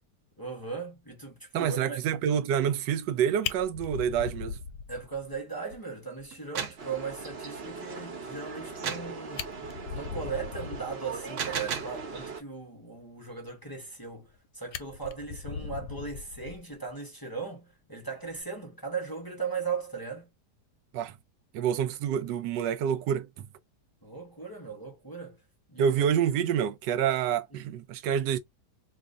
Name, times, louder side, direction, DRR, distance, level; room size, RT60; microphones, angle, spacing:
voice 1, 0.4-2.0 4.9-9.4 9.9-20.3 24.0-25.4 25.7-26.1 27.5-27.6, right 5 dB, 20° left, 0.5 m, -38 dB
voice 2, 1.5-4.6 20.9-21.1 21.5-23.5 25.8-28.4, right 8 dB, 85° right, 1.2 m, -27 dB
Fire, 3.0-3.1 3.4-5.4 5.7-5.8 6.2-6.3 6.6-6.7 8.9-9.0 9.3-11.0 13.8-14.4 14.7-16.9 18.2-18.4, left 7 dB, 75° left, 1.1 m, -39 dB
sound 1, 6.3-6.9 8.8-9.2 11.1-12.0, right 7 dB, 65° right, 0.8 m, -34 dB
sound 2, 6.8-12.4, right 4 dB, 45° right, 1.1 m, -40 dB
2.9 x 2.5 x 3.5 m
omnidirectional pair, 1.8 m